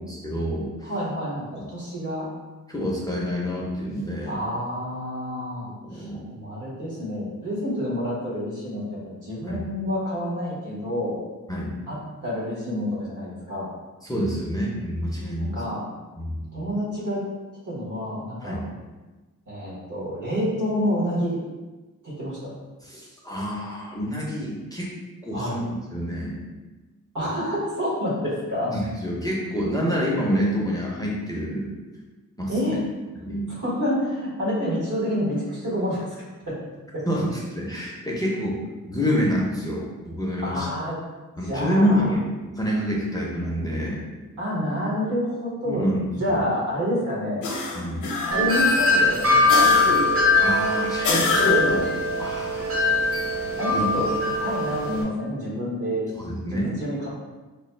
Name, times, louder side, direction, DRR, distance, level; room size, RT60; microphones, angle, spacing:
voice 1, 0.0-0.9 1.5-1.6 2.7-4.4 5.8-6.3 9.4-9.6 11.5-11.7 14.0-15.6 16.2-16.4 18.4-18.7 22.8-24.9 25.2-25.6 25.9-26.4 28.7-31.7 32.4-32.8 33.2-33.5 37.1-38.6 38.9-40.7 41.4-42.2 42.6-44.0 45.7-46.4 47.7-48.1 50.4-51.9 52.2-52.8 53.7-53.8 56.2-56.7, equal, 10° left, -5 dB, 0.5 m, -27 dB
voice 2, 0.8-2.3 4.3-11.2 11.9-13.7 15.4-15.9 16.5-17.2 17.6-18.6 19.5-21.4 22.0-22.5 25.3-25.6 27.1-28.7 32.5-32.8 33.5-36.2 36.5-36.6 36.9-37.0 40.4-41.0 41.4-42.1 44.4-47.5 48.2-49.8 53.6-54.0 54.4-56.1 56.5-57.1, equal, 70° right, -6 dB, 1.5 m, -28 dB
sound 1, 47.4-48.6 49.5-50.2 51.0-51.9, left 2 dB, 70° left, 0.6 m, -24 dB
Wind chime, 48.3-55.0, left 2 dB, 45° right, 0.8 m, -21 dB
3.1 x 2.2 x 4.2 m, 1.2 s
wide cardioid pair, 165°, 32 cm